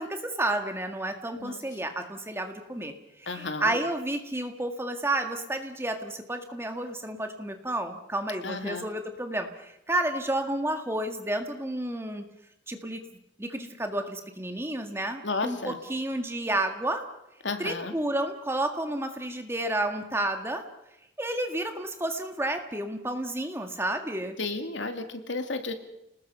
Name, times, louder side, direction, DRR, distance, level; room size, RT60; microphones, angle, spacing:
voice 1, 0.0-2.9 3.2-12.2 12.7-13.0 13.4-17.0 17.6-20.6 21.2-24.4, right 1 dB, 15° right, 5 dB, 1.9 m, -31 dB
voice 2, 3.3-3.7 8.4-8.8 15.2-15.8 17.4-17.9 24.4-25.7, left 3 dB, 75° left, 7 dB, 2.3 m, -32 dB
29.5 x 20.0 x 5.6 m, 0.85 s
head